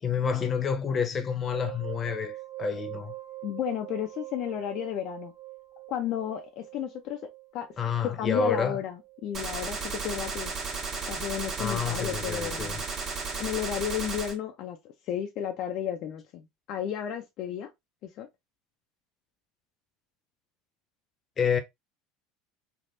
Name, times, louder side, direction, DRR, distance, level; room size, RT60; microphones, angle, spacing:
voice 1, 0.0-3.1 7.8-8.8 11.6-12.8 21.4-21.6, left 6 dB, 30° left, 0.8 m, -29 dB
sound 1, 1.5-9.5, right 18 dB, 60° right, 1.4 m, -44 dB
voice 2, 3.4-5.3 5.9-7.2 7.5-7.7 8.2-10.5 11.1-12.8 13.4-14.8 15.1-17.7 18.2-18.3, left 10 dB, 60° left, 0.4 m, -33 dB
Gunshot gunfire, 9.3-14.3, right 4 dB, 40° right, 1.3 m, -34 dB
3.3 x 2.4 x 2.5 m
hypercardioid pair, 90°, 0 cm